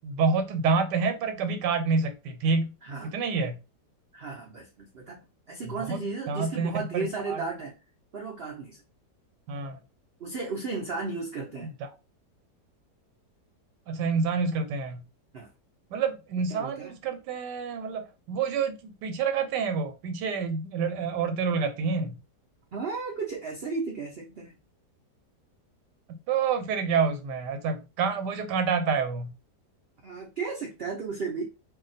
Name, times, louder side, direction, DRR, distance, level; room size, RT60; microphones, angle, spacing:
voice 1, 0.0-2.7 3.0-3.6 5.7-7.4 9.5-9.8 11.8-11.9 13.9-15.0 15.9-22.2 26.1-29.3, right 5 dB, 85° right, 1.3 m, -28 dB
voice 2, 2.8-3.1 4.1-5.2 5.5-7.8 8.1-8.8 10.2-11.7 15.3-15.5 16.5-17.0 22.7-24.5 30.0-31.4, right 4 dB, 60° right, 0.6 m, -34 dB
2.7 x 2.3 x 4.0 m
omnidirectional pair, 1.8 m